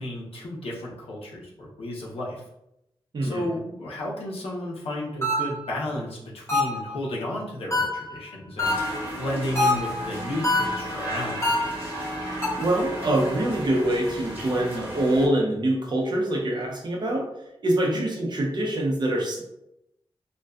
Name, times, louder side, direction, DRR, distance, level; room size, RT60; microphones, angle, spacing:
voice 1, 0.0-2.4 3.2-11.6 17.8-18.0, left 1 dB, 85° left, -4 dB, 0.7 m, -33 dB
sound 1, 5.2-5.7 6.5-6.9 7.7-8.2 8.6-9.1 9.6-10.1 10.4-10.9 11.4-11.9 12.4-12.8, left 2 dB, 30° left, 1.2 m, -25 dB
sound 2, 8.6-15.3, right 1 dB, 20° right, 1.0 m, -34 dB
voice 2, 12.6-17.3 17.6-19.4, right 1 dB, 50° right, -1 dB, 0.6 m, -24 dB
2.5 x 2.2 x 2.2 m, 0.84 s
wide cardioid pair, 175°, 10 cm